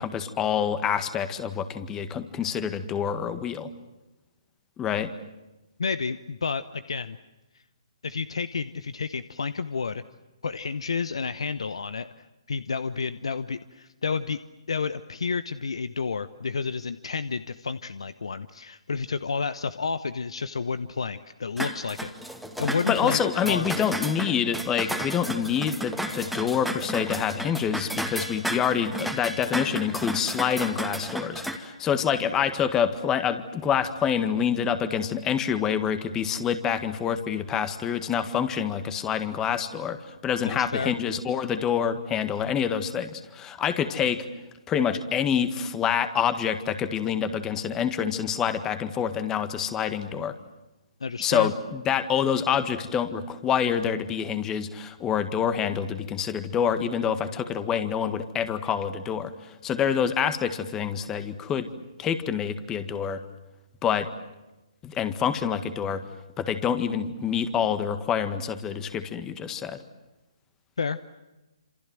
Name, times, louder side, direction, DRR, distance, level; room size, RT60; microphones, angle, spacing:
voice 1, 0.0-3.7 4.8-5.1 22.9-44.3 44.7-50.3 51.2-61.7 62.0-63.2 63.8-64.1 64.8-66.0 66.4-69.8, left 8 dB, 15° left, 11 dB, 1.7 m, -27 dB
voice 2, 5.8-7.2 8.0-10.0 10.4-14.4 14.7-22.1 22.6-23.7 40.4-40.9 51.0-51.5 70.8-71.0, left 5 dB, 65° left, 14 dB, 1.0 m, -30 dB
sound 1, 21.6-31.6, equal, ahead, 2.1 m, -33 dB
27.5 x 27.5 x 7.7 m, 1.0 s
figure-of-eight pair, 135°, 3 cm